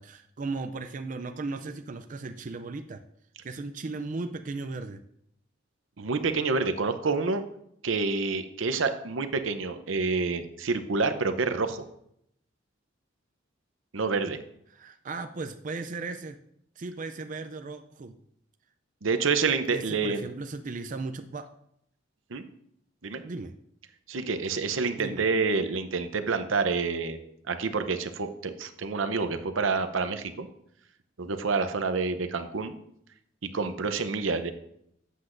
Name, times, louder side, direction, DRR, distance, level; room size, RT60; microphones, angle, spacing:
voice 1, 0.0-3.0 3.4-5.0 14.7-16.4 16.8-18.1 19.7-21.5 23.2-23.5 25.0-25.2, right 3 dB, 40° right, 7 dB, 0.4 m, -36 dB
voice 2, 6.0-7.4 7.8-11.8 13.9-14.4 19.0-20.2 22.3-22.4 23.0-23.2 24.1-27.2 27.5-30.5 31.2-32.7 33.4-34.5, right 4 dB, 85° right, 9 dB, 0.7 m, -28 dB
12.0 x 7.8 x 2.6 m, 0.73 s
head